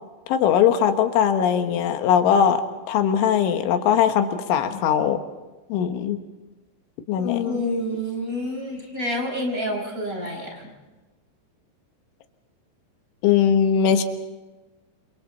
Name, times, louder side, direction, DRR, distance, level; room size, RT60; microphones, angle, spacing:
voice 1, 0.3-2.6 2.9-5.2 5.7-6.2 7.1-7.7 13.2-14.0, left 8 dB, 85° left, 7 dB, 3.8 m, -20 dB
voice 2, 7.4-10.7, equal, 20° right, 1 dB, 4.8 m, -28 dB
28.5 x 27.0 x 4.2 m, 1.2 s
omnidirectional pair, 5.4 m